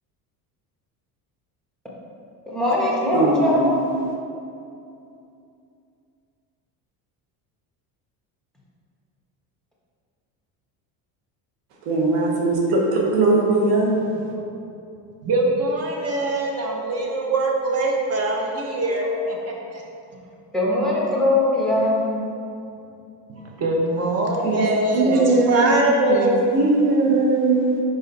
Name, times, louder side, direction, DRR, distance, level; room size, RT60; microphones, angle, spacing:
voice 1, 2.5-3.7 20.5-22.1, left 1 dB, ahead, -5 dB, 1.2 m, -21 dB
voice 2, 3.1-3.8 11.8-13.9 24.4-24.6 24.9-25.7 26.1-27.8, right 2 dB, 80° right, -1 dB, 1.2 m, -20 dB
voice 3, 15.2-19.4 19.7-19.8 23.3-25.2 25.5-26.5, right 2 dB, 35° right, 0 dB, 1.1 m, -22 dB
5.1 x 4.8 x 4.1 m, 2.6 s
cardioid pair, 110°, 42 cm